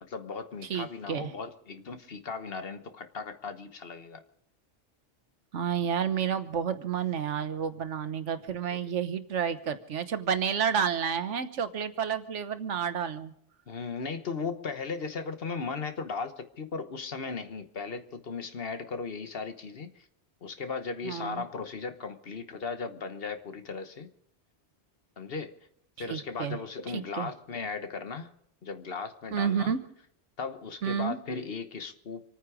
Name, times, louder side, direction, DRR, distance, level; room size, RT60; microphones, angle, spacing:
voice 1, 0.0-4.2 8.7-8.8 13.7-20.1 20.4-24.1 25.2-25.6 26.0-28.3 28.6-29.8 30.4-32.2, left 4 dB, 55° left, 9 dB, 1.3 m, -37 dB
voice 2, 0.7-1.3 5.5-13.3 21.0-21.4 26.1-26.6 26.9-27.3 29.3-29.8 30.8-31.2, right 7 dB, 85° right, 11 dB, 1.4 m, -30 dB
27.0 x 9.6 x 5.0 m, 0.71 s
omnidirectional pair, 1.2 m